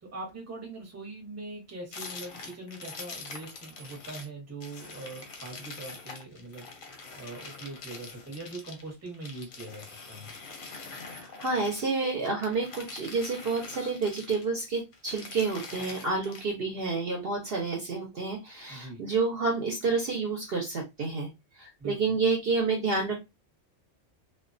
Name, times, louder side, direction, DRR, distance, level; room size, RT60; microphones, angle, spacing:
voice 1, 0.0-6.7 7.1-10.3 18.7-19.0 21.8-22.0, right 2 dB, 15° right, 0.7 m, -42 dB
sound 1, 1.9-4.3 4.6-11.9 12.3-14.6 14.9-16.5, left 4 dB, 55° left, 0.7 m, -44 dB
voice 2, 11.2-21.3 21.6-23.2, right 4 dB, 55° right, 0.8 m, -29 dB
2.3 x 2.2 x 2.5 m
omnidirectional pair, 1.3 m